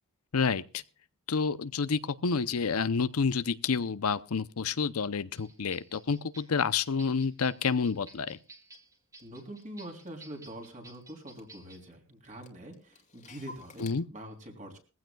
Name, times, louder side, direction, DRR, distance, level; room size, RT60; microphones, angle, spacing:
voice 1, 0.3-0.8 1.3-8.4 13.8-14.0, left 5 dB, 85° left, 0.7 m, -29 dB
sound 1, 5.3-11.8, right 2 dB, 15° right, 1.8 m, -54 dB
Clock, 8.7-8.8 9.2-10.7 10.9-11.0 11.3-11.9 12.2-13.9, left 2 dB, 35° left, 2.1 m, -52 dB
voice 2, 9.2-14.8, right 1 dB, 35° right, 3.5 m, -45 dB
21.5 x 15.5 x 2.3 m
head